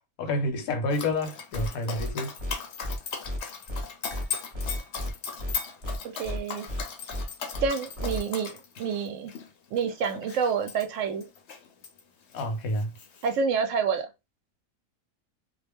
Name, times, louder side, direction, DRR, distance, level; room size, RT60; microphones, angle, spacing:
voice 1, 0.2-2.3 12.3-12.9, left 1 dB, 85° left, 1.2 m, -29 dB
Dog, 0.9-12.0 12.3-13.4, left 6 dB, 60° left, 0.8 m, -38 dB
sound 1, 1.5-1.7 2.0-2.1 2.4-2.5 2.8-3.0 3.2-3.4 3.7-3.8 4.1-4.2 4.5-5.1 5.4-5.5 5.8-6.0 6.2-6.4 6.7-6.8 7.1-7.2 7.5-7.7 8.0-8.2, left 1 dB, 25° right, 0.7 m, -32 dB
voice 2, 6.0-6.7 7.6-9.3 9.7-11.3 13.2-14.1, right 6 dB, 70° right, 0.9 m, -28 dB
2.4 x 2.1 x 3.3 m
omnidirectional pair, 1.5 m